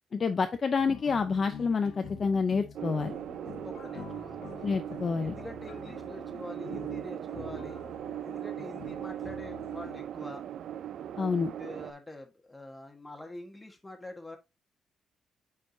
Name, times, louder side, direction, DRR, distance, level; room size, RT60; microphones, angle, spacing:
voice 1, 0.1-3.2 4.6-5.4 11.2-11.5, left 5 dB, 35° left, 0.6 m, -28 dB
sound 1, 0.8-10.0, left 7 dB, 85° left, 1.6 m, -47 dB
sound 2, 2.7-11.9, right 10 dB, 70° right, 0.4 m, -39 dB
voice 2, 3.6-4.5 5.0-7.8 8.2-10.4 11.6-14.4, left 2 dB, 10° left, 1.5 m, -45 dB
8.9 x 4.9 x 2.7 m
cardioid pair, 155°, 0 cm